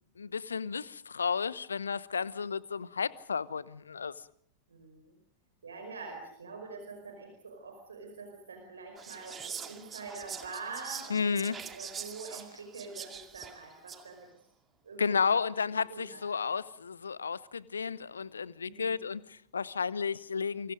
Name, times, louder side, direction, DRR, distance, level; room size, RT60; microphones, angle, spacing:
voice 1, 0.2-4.1 11.1-11.6 15.0-20.7, left 5 dB, 75° left, 0.9 m, -32 dB
voice 2, 4.7-5.1 5.6-14.3 14.8-15.3 15.9-16.2 18.6-19.1, right 4 dB, 70° right, 4.9 m, -45 dB
Whispering, 9.0-14.1, right 7 dB, 20° right, 2.3 m, -44 dB
28.5 x 25.0 x 5.2 m
figure-of-eight pair, 90°, 0 cm